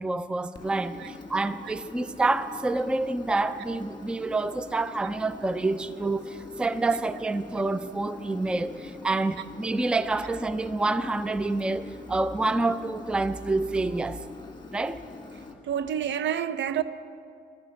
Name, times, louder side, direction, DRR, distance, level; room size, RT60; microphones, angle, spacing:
voice 1, 0.0-14.2 14.7-15.0, right 2 dB, 5° right, 0.4 m, -28 dB
Engine, 0.6-15.5, left 3 dB, 20° left, 1.8 m, -44 dB
voice 2, 15.7-16.8, right 9 dB, 65° right, 0.6 m, -28 dB
12.5 x 9.3 x 7.6 m
cardioid pair, 90°, 20 cm